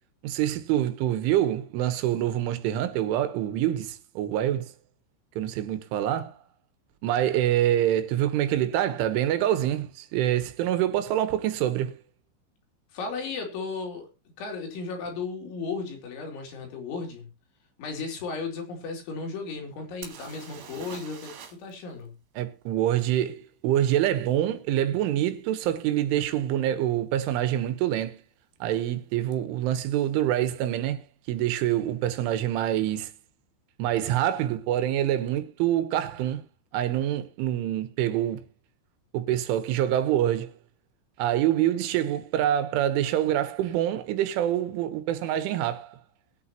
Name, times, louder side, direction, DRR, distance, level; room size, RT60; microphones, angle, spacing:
voice 1, 0.2-4.7 5.4-6.4 7.0-12.0 22.4-28.2 28.6-33.1 33.8-36.5 36.7-38.4 39.1-40.5 41.2-46.0, right 12 dB, 80° right, 3.5 m, -26 dB
voice 2, 12.9-14.1 14.4-17.3 17.8-22.2, left 4 dB, 70° left, 5.2 m, -35 dB
sound 1, 20.0-21.7 22.0-22.1 25.5-25.6 26.3-26.4 26.7-27.3 29.3-29.4 29.7-29.8, right 7 dB, 60° right, 3.7 m, -45 dB
21.0 x 8.4 x 2.9 m
omnidirectional pair, 5.6 m